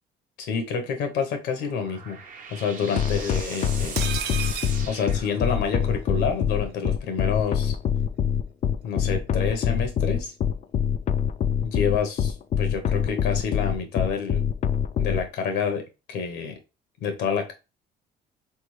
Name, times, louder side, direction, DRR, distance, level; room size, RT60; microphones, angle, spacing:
voice 1, 0.4-2.2 2.5-4.0 4.9-7.8 8.8-10.3 11.6-14.4 15.0-16.6 17.0-17.5, left 6 dB, 80° left, 5 dB, 1.1 m, -28 dB
sound 1, 1.4-5.9, right 6 dB, 50° right, 0.9 m, -40 dB
sound 2, 3.0-15.2, left 8 dB, 45° left, 0.4 m, -24 dB
sound 3, 4.0-5.9 6.2-6.3 6.6-6.7, right 9 dB, 70° right, 0.6 m, -34 dB
3.8 x 3.5 x 3.2 m, 0.29 s
cardioid pair, 110°, 17 cm